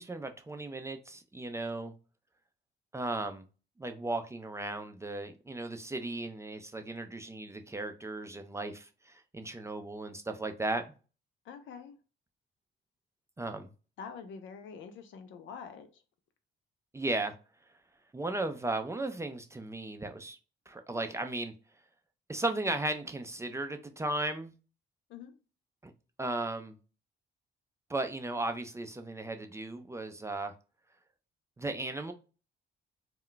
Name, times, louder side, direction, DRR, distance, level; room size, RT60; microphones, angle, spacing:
voice 1, 0.0-1.9 2.9-3.4 3.8-10.8 13.4-13.7 16.9-17.3 18.1-20.4 20.7-21.5 22.3-24.5 25.8-25.9 26.2-26.7 27.9-30.5 31.6-32.1, right 2 dB, 15° right, 0.4 m, -36 dB
voice 2, 11.5-11.9 14.0-15.9 25.1-25.3, left 6 dB, 75° left, 0.6 m, -45 dB
2.2 x 2.2 x 3.8 m
cardioid pair, 90°, 20 cm